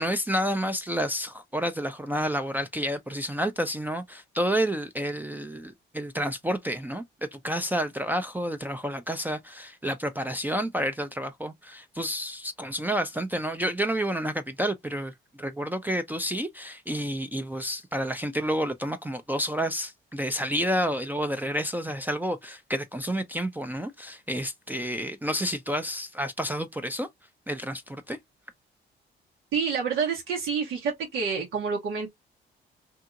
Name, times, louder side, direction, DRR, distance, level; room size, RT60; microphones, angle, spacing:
voice 1, 0.0-7.0 7.3-27.1 27.5-28.2, equal, 10° right, 0.4 m, -30 dB
voice 2, 29.5-32.1, right 6 dB, 90° right, 0.9 m, -28 dB
2.7 x 2.7 x 2.4 m
cardioid pair, 90°, 20 cm